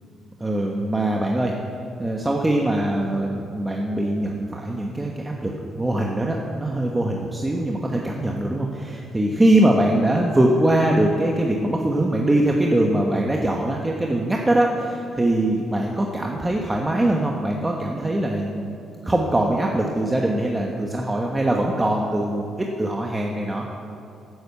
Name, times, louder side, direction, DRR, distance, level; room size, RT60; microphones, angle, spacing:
voice 1, 0.4-1.5 2.0-18.6 19.0-23.6, right 1 dB, 15° right, 0 dB, 1.3 m, -22 dB
12.5 x 9.5 x 8.3 m, 2.6 s
cardioid pair, 90°, 0 cm